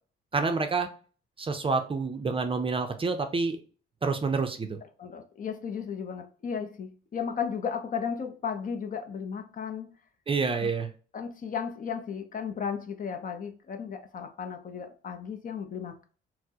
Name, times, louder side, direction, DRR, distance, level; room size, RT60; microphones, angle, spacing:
voice 1, 0.3-0.9 1.4-3.6 4.0-4.8 10.3-10.9, right 4 dB, 25° right, 0.5 m, -28 dB
voice 2, 5.0-9.9 10.6-10.7 11.1-16.0, left 6 dB, 45° left, 0.6 m, -35 dB
4.3 x 2.0 x 2.8 m
cardioid pair, 90°, 20 cm